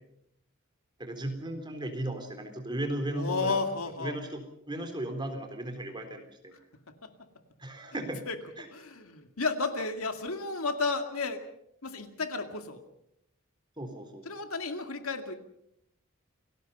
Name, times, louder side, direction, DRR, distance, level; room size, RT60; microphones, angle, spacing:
voice 1, 1.0-3.6 4.0-6.5 7.6-8.2 8.6-8.7 13.8-14.2, right 1 dB, 20° right, 5 dB, 3.8 m, -36 dB
voice 2, 3.1-4.2 7.0-7.1 8.3-8.4 8.7-11.4 11.8-12.8 14.3-15.4, left 4 dB, 75° left, 7 dB, 2.3 m, -32 dB
28.5 x 19.5 x 5.5 m, 0.74 s
head